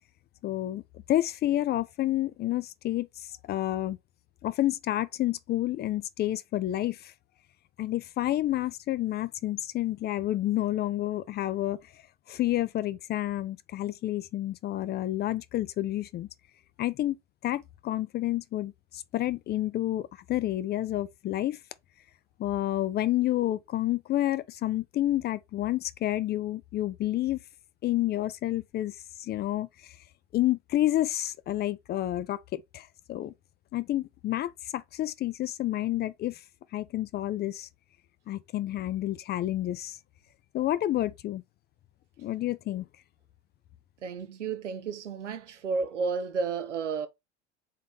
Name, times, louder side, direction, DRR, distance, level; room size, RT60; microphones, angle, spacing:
voice 1, 0.4-0.8 1.1-4.0 4.4-7.1 7.8-11.8 12.3-16.3 16.8-17.2 17.4-21.6 22.4-27.4 27.8-30.0 30.3-33.3 33.7-36.4 36.7-37.7 38.3-40.0 40.5-41.4 42.2-42.8, left 14 dB, 30° left, 0.4 m, -29 dB
voice 2, 44.0-47.1, right 5 dB, 90° right, 0.8 m, -32 dB
4.3 x 3.7 x 3.4 m
hypercardioid pair, 80°, 35 cm